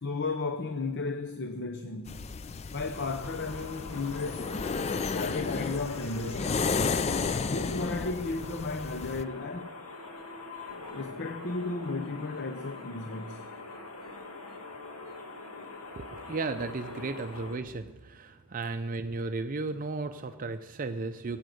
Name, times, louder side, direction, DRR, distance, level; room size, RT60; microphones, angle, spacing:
voice 1, 0.0-2.2 2.7-4.5 5.1-6.7 7.4-9.7 10.9-13.4, left 3 dB, 50° left, 0.8 m, -34 dB
sound 1, 2.1-9.2, left 4 dB, 30° left, 0.4 m, -33 dB
sound 2, 2.9-17.6, left 3 dB, 80° left, 2.0 m, -43 dB
voice 2, 16.0-21.4, right 3 dB, 40° right, 0.5 m, -35 dB
16.5 x 8.7 x 7.8 m
head